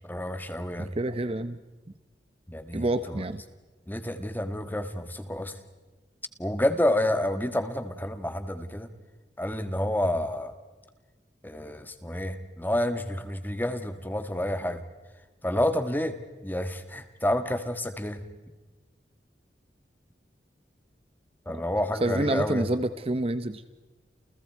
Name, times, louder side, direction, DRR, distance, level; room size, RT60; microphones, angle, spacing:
voice 1, 0.1-0.9 2.5-3.3 3.9-5.5 6.4-8.9 9.4-10.5 11.4-14.8 15.4-16.2 16.4-18.2 21.4-22.7, left 1 dB, 10° left, 9 dB, 1.6 m, -29 dB
voice 2, 0.8-1.6 2.7-3.4 21.5-21.6 22.0-23.7, right 1 dB, 35° right, 12 dB, 0.8 m, -28 dB
29.5 x 29.5 x 4.6 m, 1.2 s
head